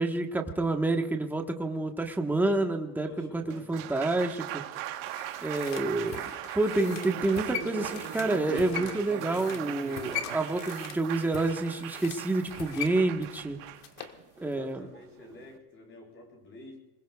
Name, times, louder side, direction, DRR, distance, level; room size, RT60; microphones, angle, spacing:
voice 1, 0.0-4.6 5.4-6.2 6.5-13.6 14.4-14.9, right 2 dB, 5° right, 3 dB, 1.3 m, -28 dB
voice 2, 3.0-4.3 14.4-16.8, left 2 dB, 30° left, 0 dB, 7.9 m, -50 dB
Applause, 3.3-15.6, right 14 dB, 75° right, 1.4 m, -39 dB
sound 1, 4.8-14.2 14.5-14.6, left 10 dB, 65° left, 1.6 m, -41 dB
25.5 x 21.5 x 2.4 m, 1.1 s
cardioid pair, 150°, 38 cm